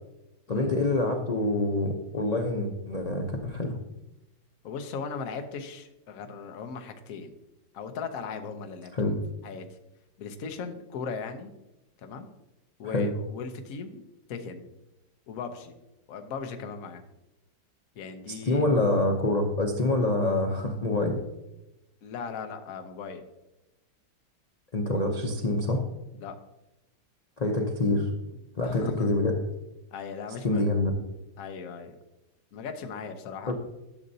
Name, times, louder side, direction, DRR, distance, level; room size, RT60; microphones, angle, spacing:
voice 1, 0.5-3.8 8.9-9.1 12.8-13.1 18.4-21.2 24.7-25.8 27.4-28.1 28.6-29.4 30.4-30.9 33.5-33.6, left 2 dB, 85° left, 2 dB, 0.3 m, -26 dB
voice 2, 4.6-7.3 7.7-9.2 9.4-9.6 10.2-11.5 12.0-12.3 12.8-14.0 14.3-14.7 15.3-15.7 16.1-17.0 18.0-18.7 22.0-23.2 26.1-26.4 28.6-29.1 29.9-30.7 31.4-32.0 32.5-33.5, left 5 dB, 60° left, 6 dB, 1.1 m, -38 dB
12.0 x 6.5 x 2.7 m, 0.95 s
omnidirectional pair, 1.9 m